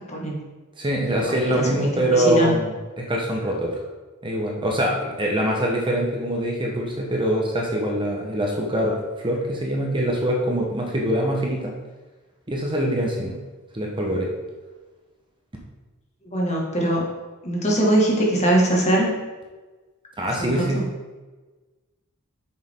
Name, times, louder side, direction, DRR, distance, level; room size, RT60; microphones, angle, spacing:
voice 1, 0.1-0.4 1.2-2.6 16.2-17.0 17.4-19.1 20.4-20.8, right 1 dB, 30° left, -2 dB, 1.9 m, -22 dB
voice 2, 0.8-3.7 4.2-9.0 9.2-11.7 12.5-13.4 13.7-14.3 20.2-20.8, right 1 dB, 20° right, -1 dB, 1.1 m, -24 dB
8.6 x 6.5 x 3.7 m, 1.2 s
head